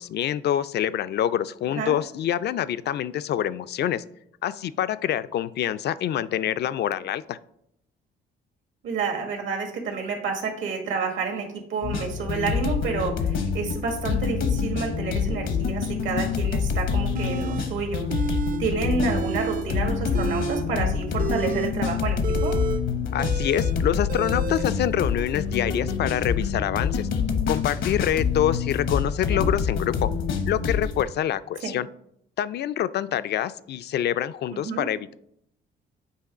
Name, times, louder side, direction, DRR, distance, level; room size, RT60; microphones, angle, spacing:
voice 1, 0.0-4.0 4.4-7.4 23.1-27.1 27.5-30.1 30.5-31.9 32.4-35.1, left 10 dB, 55° left, 15 dB, 0.4 m, -26 dB
voice 2, 8.8-18.1 18.6-22.6 29.3-29.5 31.6-31.7 34.5-34.9, right 5 dB, 75° right, 2 dB, 1.7 m, -29 dB
sound 1, 11.8-31.0, left 6 dB, 75° left, 0.9 m, -26 dB
sound 2, 17.2-17.7 18.1-18.6 18.9-19.7 20.0-24.7, right 6 dB, 45° right, 0.5 m, -31 dB
8.3 x 3.0 x 4.9 m, 0.75 s
cardioid pair, 90°, 20 cm